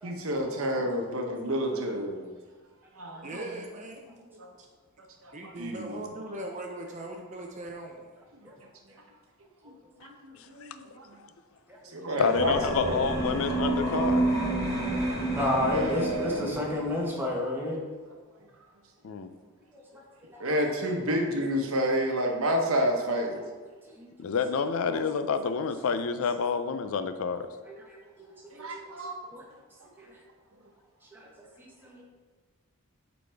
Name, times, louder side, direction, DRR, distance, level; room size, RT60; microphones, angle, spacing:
voice 1, 0.0-2.3 2.9-3.4 4.3-4.5 5.2-6.0 9.6-9.7 10.0-11.1 11.8-13.0 15.2-15.3 15.7-16.5 20.4-23.4 28.5-29.2, equal, 75° right, 2 dB, 1.0 m, -30 dB
voice 2, 3.2-4.2 4.6-4.7 5.3-8.1 20.5-20.8, right 1 dB, 35° right, 2 dB, 0.5 m, -40 dB
voice 3, 12.2-14.3 19.0-19.3 24.2-27.5, left 5 dB, 70° left, 10 dB, 0.4 m, -28 dB
sound 1, 12.2-16.9, right 2 dB, 15° left, 1.2 m, -29 dB
voice 4, 15.2-17.9 19.7-19.8 20.3-20.4 24.0-24.1 24.9-25.0 27.7-28.9 29.3-29.4 30.0-30.1 31.1-31.3 31.6-32.0, left 1 dB, 10° right, -3 dB, 1.1 m, -32 dB
8.1 x 4.1 x 3.4 m, 1.4 s
head